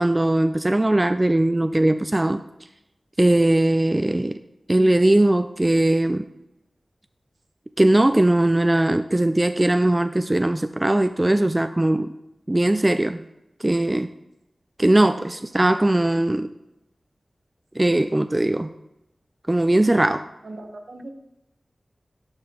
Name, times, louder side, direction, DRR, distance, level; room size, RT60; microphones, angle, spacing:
voice 1, 0.0-2.4 3.2-4.4 4.7-6.3 7.8-12.1 12.5-13.2 13.6-14.1 14.8-16.5 17.8-18.7 19.5-20.2, right 1 dB, 25° right, 9 dB, 0.3 m, -19 dB
voice 2, 20.4-21.1, right 2 dB, 75° right, 3 dB, 1.1 m, -38 dB
12.0 x 4.4 x 3.7 m, 0.89 s
wide cardioid pair, 60°, 0 cm